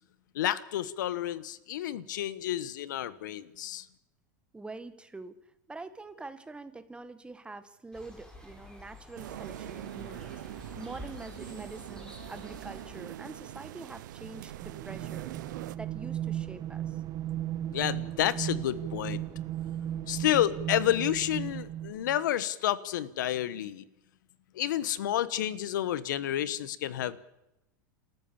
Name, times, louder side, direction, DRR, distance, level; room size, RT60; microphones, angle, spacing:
voice 1, 0.3-3.8 17.7-19.3 20.1-23.8 24.5-27.2, left 12 dB, 80° left, 16 dB, 1.4 m, -30 dB
voice 2, 4.5-5.4 5.7-15.3 15.7-17.0, right 3 dB, 10° right, 10 dB, 1.9 m, -45 dB
sound 1, 7.9-13.0, left 2 dB, 5° left, 5.2 m, -49 dB
sound 2, 9.2-15.8, right 14 dB, 75° right, 0.8 m, -43 dB
sound 3, 14.6-22.2, right 12 dB, 40° right, 1.3 m, -36 dB
28.5 x 14.0 x 7.2 m, 0.89 s
hypercardioid pair, 110°, 10 cm